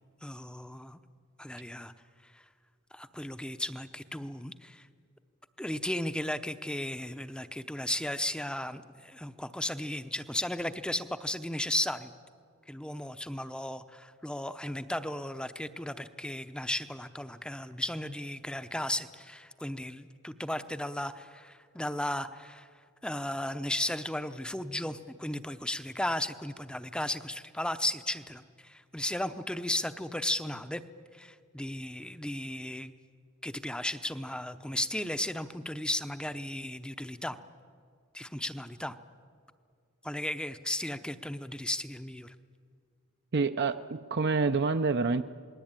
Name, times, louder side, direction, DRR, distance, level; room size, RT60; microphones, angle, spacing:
voice 1, 0.2-1.0 1.4-1.9 2.2-2.4 2.9-4.9 5.6-12.1 12.7-22.7 23.0-30.8 31.1-32.9 33.4-37.4 38.1-39.0 40.0-42.3, left 1 dB, 5° left, 11 dB, 0.7 m, -35 dB
voice 2, 43.3-45.2, right 4 dB, 50° right, 8 dB, 0.6 m, -27 dB
28.0 x 20.0 x 8.9 m, 2.1 s
head